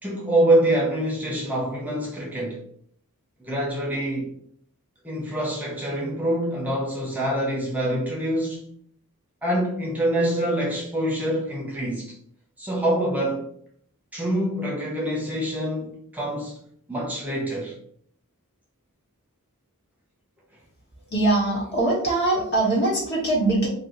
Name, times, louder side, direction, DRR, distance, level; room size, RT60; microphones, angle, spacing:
voice 1, 0.0-2.6 3.4-4.3 5.0-8.6 9.4-12.1 12.6-13.5 14.1-16.6 16.9-17.7, right 1 dB, 5° right, 0.7 m, -25 dB
voice 2, 21.1-23.7, right 2 dB, 50° left, 1.4 m, -22 dB
2.8 x 2.6 x 4.2 m
head